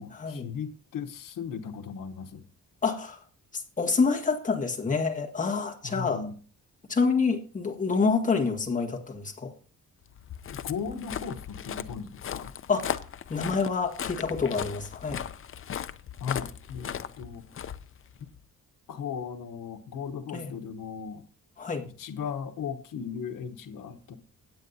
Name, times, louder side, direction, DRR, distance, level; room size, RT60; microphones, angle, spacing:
voice 1, 0.0-2.4 5.8-6.3 10.5-12.5 16.2-17.5 18.2-18.3 18.9-21.2 22.0-24.2, left 6 dB, 90° left, 8 dB, 1.0 m, -37 dB
voice 2, 2.8-3.2 3.5-6.2 6.9-9.5 12.7-13.0 13.3-15.2 20.3-20.5 21.6-21.9, left 4 dB, 25° left, 1 dB, 1.6 m, -27 dB
Walk footsteps, 10.1-18.4, left 9 dB, 40° left, 0.5 m, -37 dB
17.5 x 9.4 x 2.7 m, 0.40 s
wide cardioid pair, 170°, 32 cm